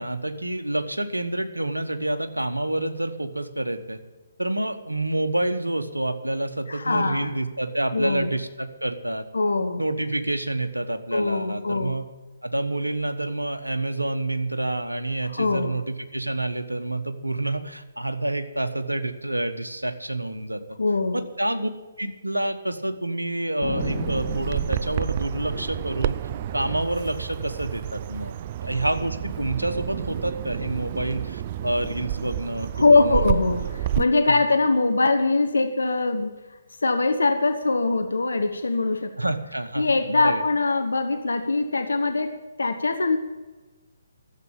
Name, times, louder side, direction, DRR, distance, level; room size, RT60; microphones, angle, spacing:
voice 1, 0.0-4.0 4.4-9.2 9.8-12.1 12.4-20.8 21.1-21.7 22.0-26.2 26.5-28.3 28.6-33.2 34.3-34.4 39.2-40.4, right 1 dB, 85° right, 8 dB, 1.2 m, -28 dB
voice 2, 6.7-7.3 7.9-8.3 9.3-9.8 11.1-11.9 15.3-15.7 20.8-21.2 32.8-36.4 36.8-39.1 39.8-43.2, left 3 dB, 70° left, 7 dB, 1.0 m, -22 dB
Thunder, 23.6-28.4 28.7-28.8 29.0-29.6 30.0-31.2, left 1 dB, 5° left, 3.9 m, -36 dB
Bird vocalization bird call bird song, 23.8-34.0, right 11 dB, 35° right, 0.4 m, -30 dB
12.5 x 7.6 x 8.5 m, 1.3 s
figure-of-eight pair, 135°, 0 cm